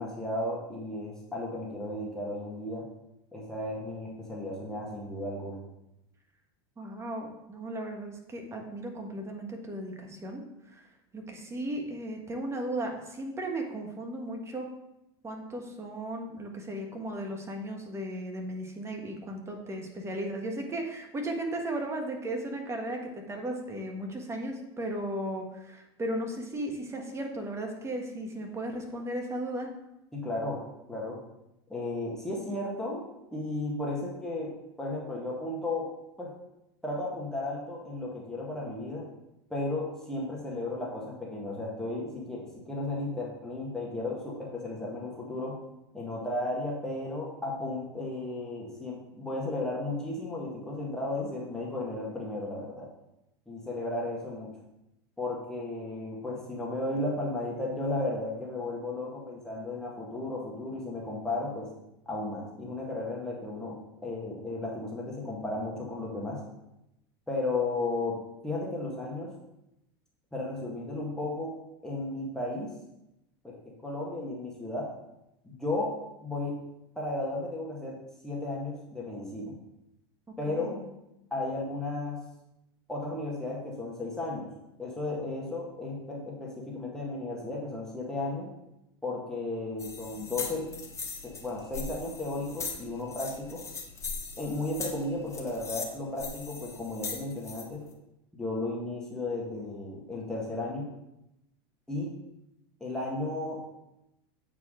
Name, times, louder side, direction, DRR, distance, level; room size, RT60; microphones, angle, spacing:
voice 1, 0.0-2.9 3.3-5.6 30.1-30.6 30.9-31.2 31.7-33.0 33.3-34.5 34.8-35.9 36.2-36.3 36.8-39.1 39.5-45.6 45.9-52.9 53.5-54.5 55.2-61.7 62.0-66.4 67.3-68.2 68.4-69.3 70.3-71.5 71.8-72.7 73.4-73.6 73.8-74.9 75.4-75.9 76.2-76.6 76.9-78.0 78.2-79.5 80.4-80.7 81.3-82.2 82.9-84.5 84.8-88.5 89.0-90.7 91.2-93.6 94.4-97.8 98.3-100.9 101.9-102.1 102.8-103.6, left 2 dB, 5° left, -4 dB, 1.7 m, -34 dB
voice 2, 6.8-10.4 10.7-10.8 11.1-14.7 15.2-29.7 80.3-80.9, right 1 dB, 20° right, 2 dB, 1.5 m, -36 dB
sound 1, 89.8-97.6, left 4 dB, 20° left, 1.1 m, -40 dB
8.1 x 4.8 x 3.8 m, 0.88 s
hypercardioid pair, 100°, 13 cm